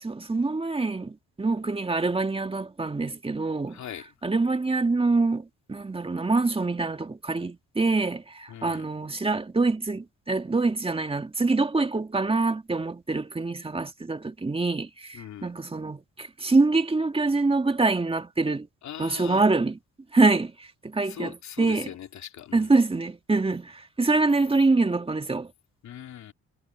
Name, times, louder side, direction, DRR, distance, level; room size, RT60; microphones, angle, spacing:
voice 1, 0.0-3.8 4.2-18.7 19.0-19.8 20.1-21.9 22.5-25.5, right 3 dB, 20° right, 1.8 m, -25 dB
voice 2, 3.7-4.1 8.5-8.9 15.1-15.5 18.8-19.4 21.0-22.7 25.8-26.3, left 10 dB, 65° left, 2.9 m, -40 dB
cardioid pair, 90°, 30 cm